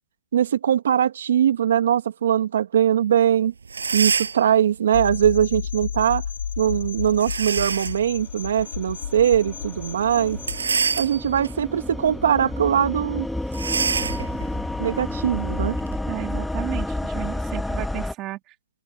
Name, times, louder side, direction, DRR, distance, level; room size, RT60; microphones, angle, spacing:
voice 1, 0.3-3.5 3.9-6.2 6.6-10.4 11.0-13.3 14.8-15.8, right 9 dB, 60° right, 2.2 m, -21 dB
sound 1, 3.3-3.4 3.7-4.5 7.2-8.1 8.6-8.7 10.3-11.5 12.0-12.3 12.5-12.6 13.5-16.0, right 5 dB, 85° right, 7.9 m, -26 dB
sound 2, 4.9-10.6, left 7 dB, 70° left, 4.8 m, -32 dB
sound 3, 8.4-18.1, left 1 dB, ahead, 1.7 m, -30 dB
voice 2, 16.1-18.4, right 16 dB, 20° right, 2.0 m, -33 dB
open air
hypercardioid pair, 155°, 0 cm